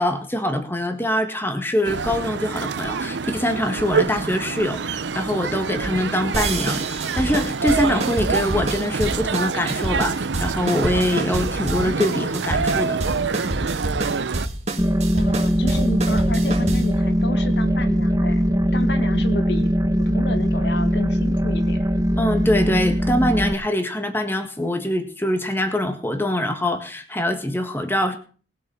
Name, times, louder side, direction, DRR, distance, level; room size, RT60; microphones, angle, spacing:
voice 1, 0.0-13.0 22.2-28.2, left 1 dB, 10° left, 6 dB, 1.7 m, -24 dB
sound 1, 1.8-14.5, right 5 dB, 80° right, 0.6 m, -26 dB
sound 2, 6.3-17.0, right 1 dB, 40° right, 2.2 m, -28 dB
sound 3, 14.8-23.5, equal, 20° right, 0.8 m, -21 dB
voice 2, 15.1-18.4 18.7-19.7 20.0-21.8, left 1 dB, 70° left, 9 dB, 1.5 m, -31 dB
20.0 x 7.3 x 5.6 m, 0.40 s
head